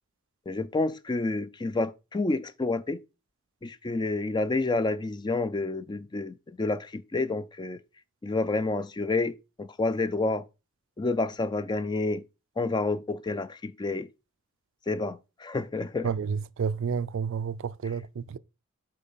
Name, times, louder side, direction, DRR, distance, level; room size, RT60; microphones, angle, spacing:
voice 1, 0.5-3.0 3.6-7.8 8.2-10.4 11.0-12.2 12.6-14.1 14.9-16.1, left 3 dB, 20° left, 0.4 m, -29 dB
voice 2, 16.0-18.4, right 6 dB, 60° right, 0.3 m, -30 dB
8.2 x 3.2 x 5.4 m
head